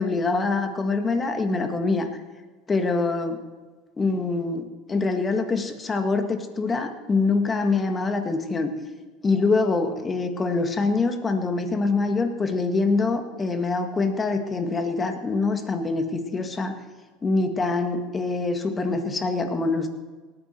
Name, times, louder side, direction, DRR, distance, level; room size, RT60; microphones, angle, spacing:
voice 1, 0.0-2.1 2.7-3.4 4.0-8.7 9.2-16.8 17.2-19.9, left 3 dB, 25° left, 6 dB, 1.8 m, -24 dB
19.0 x 9.3 x 4.5 m, 1.3 s
hypercardioid pair, 85°, 0 cm